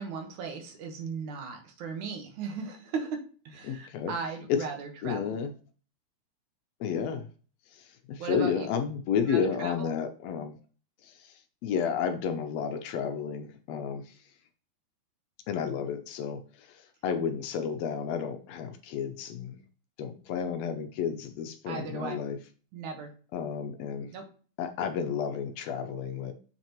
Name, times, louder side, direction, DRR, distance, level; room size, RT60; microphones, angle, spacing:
voice 1, 0.0-3.2 3.5-5.4 8.2-8.7 9.3-9.9 21.7-22.2 22.7-23.1 24.1-24.2, right 5 dB, 90° right, 4 dB, 2.7 m, -37 dB
voice 2, 3.6-4.1 4.5-4.7 5.0-5.5 6.8-7.3 7.7-10.6 11.0-14.1 15.5-19.6 20.0-22.4 23.3-24.1 24.6-26.3, left 7 dB, 75° left, 7 dB, 1.6 m, -32 dB
7.4 x 5.7 x 3.0 m, 0.39 s
omnidirectional pair, 3.3 m